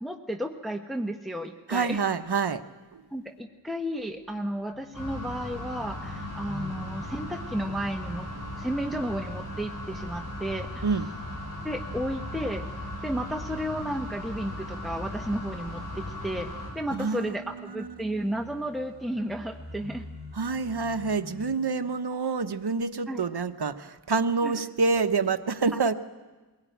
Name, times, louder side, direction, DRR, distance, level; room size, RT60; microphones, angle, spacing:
voice 1, 0.0-2.0 3.1-8.3 8.6-10.8 11.6-12.7 13.0-20.1 23.1-23.2 24.4-24.6, equal, ahead, 3 dB, 1.1 m, -33 dB
voice 2, 1.7-2.6 2.9-3.0 10.8-11.1 16.9-17.9 20.3-25.9, right 4 dB, 60° right, 8 dB, 1.0 m, -27 dB
sound 1, 3.6-21.6, left 2 dB, 85° left, 7.4 m, -48 dB
sound 2, 4.9-16.7, left 1 dB, 45° left, 7.4 m, -37 dB
22.0 x 17.0 x 9.3 m, 1.3 s
wide cardioid pair, 50°, 44 cm